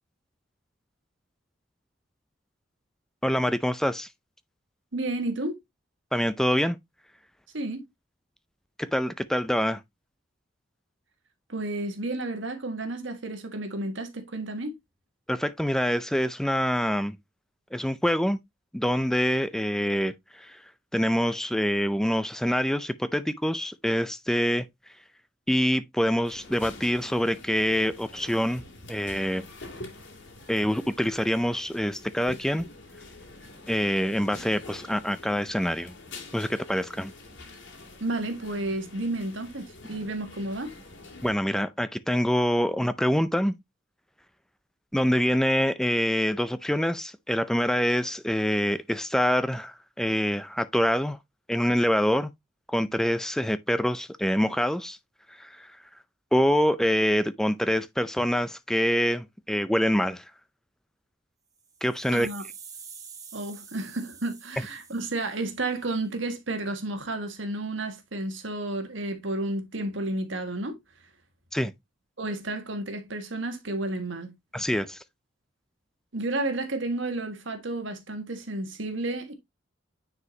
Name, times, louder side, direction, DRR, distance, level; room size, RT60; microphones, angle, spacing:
voice 1, 3.2-4.1 6.1-6.8 8.8-9.8 15.3-17.2 17.7-18.4 18.7-20.6 20.9-24.7 25.5-28.6 28.9-29.5 30.5-32.7 33.7-35.9 36.3-37.1 41.2-43.5 44.9-51.2 51.5-52.3 52.7-55.0 55.3-55.7 56.3-60.2 61.8-62.3 71.5-71.7 74.5-75.0, equal, 5° left, 0.4 m, -25 dB
voice 2, 4.9-5.6 7.5-7.9 11.5-14.8 38.0-40.7 62.1-62.4 63.3-70.8 72.2-74.3 76.1-79.3, right 2 dB, 70° right, 1.7 m, -31 dB
sound 1, 26.2-41.3, left 2 dB, 70° left, 2.7 m, -46 dB
sound 2, 61.6-65.8, right 6 dB, 20° right, 1.5 m, -47 dB
9.6 x 4.9 x 2.8 m
head